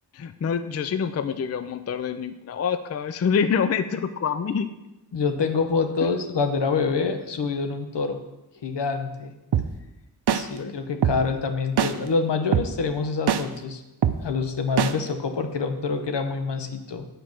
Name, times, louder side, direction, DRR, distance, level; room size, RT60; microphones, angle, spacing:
voice 1, 0.1-4.7 10.6-10.7, left 6 dB, 35° left, 11 dB, 0.4 m, -26 dB
voice 2, 5.1-8.2 8.6-9.3 10.3-13.8 14.2-17.1, left 4 dB, 70° left, 7 dB, 1.0 m, -26 dB
sound 1, 9.5-9.7 10.3-10.4 11.0-11.2 11.8-11.9 12.5-12.7 13.3-13.4 14.0-14.2 14.8-14.9, right 9 dB, 65° right, 0.6 m, -20 dB
8.3 x 4.5 x 6.4 m, 1.0 s
wide cardioid pair, 70°, 43 cm